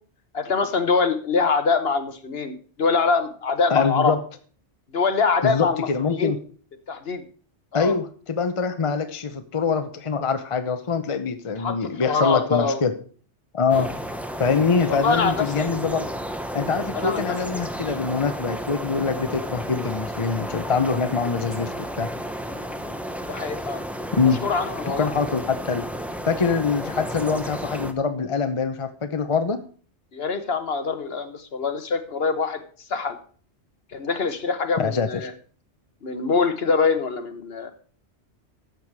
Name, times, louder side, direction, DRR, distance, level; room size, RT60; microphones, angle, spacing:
voice 1, 0.3-4.1 4.9-6.3 6.9-7.2 7.7-7.9 11.6-12.8 13.7-13.9 14.9-15.7 16.9-17.4 22.5-22.9 23.3-23.8 24.4-25.1 30.1-32.6 32.9-33.2 33.9-35.3 36.0-37.7, left 4 dB, 60° left, 9 dB, 1.3 m, -24 dB
voice 2, 3.7-4.2 5.4-6.4 7.7-12.9 13.5-13.9 14.4-16.1 16.5-22.1 24.2-24.4 24.9-25.8 26.2-29.6 34.8-35.3, left 5 dB, 30° left, 8 dB, 0.8 m, -24 dB
sound 1, 13.7-27.9, equal, ahead, 0.7 m, -32 dB
13.0 x 7.2 x 4.7 m, 0.43 s
omnidirectional pair, 1.2 m